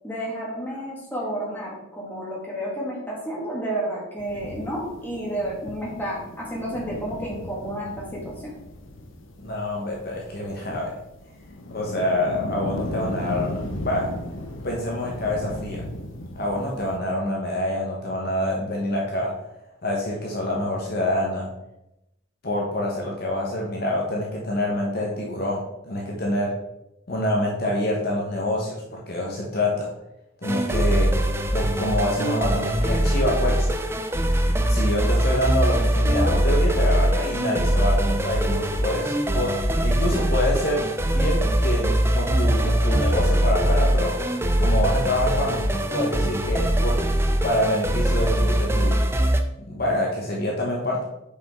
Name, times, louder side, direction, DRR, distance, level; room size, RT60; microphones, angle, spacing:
voice 1, 0.0-8.5 10.7-10.8, right 1 dB, 10° left, -5 dB, 2.2 m, -31 dB
sound 1, 4.2-17.0, left 1 dB, 65° left, 1.0 m, -36 dB
voice 2, 9.4-10.9 11.7-14.1 14.6-15.8 16.3-19.3 19.8-21.5 22.4-26.5 27.1-29.9 30.4-31.1 31.5-33.7 34.7-39.5 39.8-40.8 41.1-44.2 44.6-47.0 47.4-49.0 49.7-51.0, left 1 dB, 45° left, -2 dB, 1.1 m, -26 dB
sound 2, 30.4-49.4, right 1 dB, 10° right, 0.4 m, -22 dB
8.3 x 5.3 x 3.7 m, 0.89 s
head